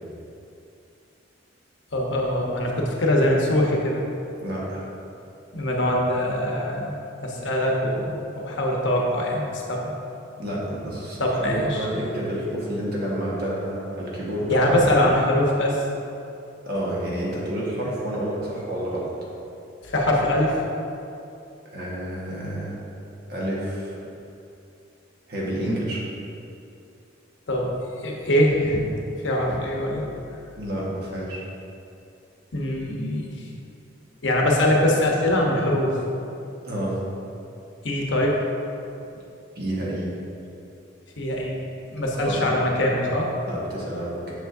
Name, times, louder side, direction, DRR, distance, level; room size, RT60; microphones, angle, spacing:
voice 1, 1.9-4.0 5.5-6.9 7.2-9.9 11.2-12.0 14.5-15.8 19.8-20.6 27.5-27.7 28.0-28.9 29.2-30.0 32.5-33.5 34.2-36.0 37.8-38.4 41.2-41.6 41.9-43.3, left 1 dB, 60° left, -1 dB, 0.9 m, -22 dB
voice 2, 4.4-4.8 10.4-11.2 11.5-14.7 16.6-19.1 21.7-22.8 23.3-24.0 25.3-26.1 30.6-31.4 36.6-37.0 39.5-40.1 42.0-42.4 43.5-44.3, right 1 dB, 50° right, -5 dB, 1.4 m, -29 dB
7.0 x 7.0 x 2.7 m, 2.7 s
head